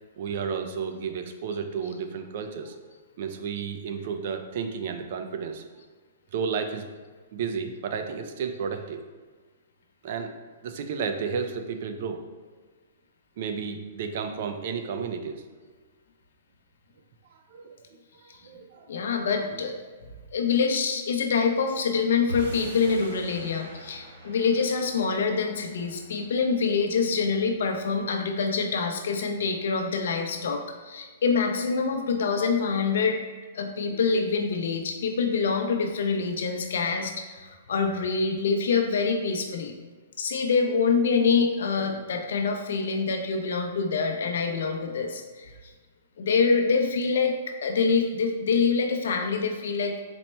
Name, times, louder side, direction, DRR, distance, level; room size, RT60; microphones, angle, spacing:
voice 1, 0.2-2.8 3.2-5.6 6.3-6.9 7.3-9.0 10.0-10.3 10.6-12.3 13.4-15.5 17.3-19.0, right 6 dB, 55° right, 7 dB, 0.4 m, -32 dB
voice 2, 18.9-19.7 20.3-33.2 33.5-39.7 40.2-45.5 46.2-47.3 47.6-50.0, left 5 dB, 75° left, 4 dB, 0.5 m, -25 dB
sound 1, 22.3-28.7, right 1 dB, 75° right, 1.0 m, -43 dB
4.2 x 2.1 x 4.2 m, 1.4 s
hypercardioid pair, 150°, 0 cm